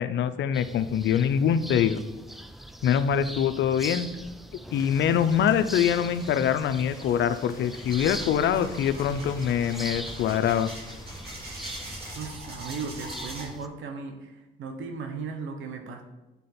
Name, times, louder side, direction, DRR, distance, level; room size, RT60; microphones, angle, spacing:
voice 1, 0.0-2.0 2.8-4.1 4.7-10.7, left 8 dB, 65° left, 12 dB, 0.5 m, -24 dB
sound 1, 0.5-13.7, equal, ahead, 0.4 m, -41 dB
sound 2, 4.7-12.3, left 1 dB, 15° left, 1.6 m, -47 dB
sound 3, 7.8-13.5, right 1 dB, 50° right, 2.0 m, -42 dB
voice 2, 12.1-16.0, right 4 dB, 75° right, 5 dB, 1.0 m, -36 dB
8.3 x 3.8 x 4.2 m, 1.0 s
cardioid pair, 90°, 20 cm